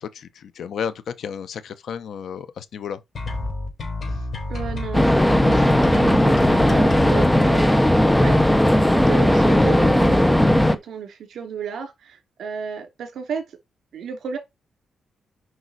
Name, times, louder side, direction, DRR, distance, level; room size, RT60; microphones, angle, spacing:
voice 1, 0.0-3.0, left 7 dB, 70° left, 1.0 m, -32 dB
sound 1, 3.2-7.2, left 2 dB, 45° left, 4.6 m, -30 dB
voice 2, 4.1-8.4 8.7-13.5 13.9-14.4, right 7 dB, 70° right, 2.6 m, -33 dB
sound 2, 4.9-10.7, left 1 dB, 5° left, 0.7 m, -17 dB
7.8 x 5.5 x 4.2 m
wide cardioid pair, 140°, 0 cm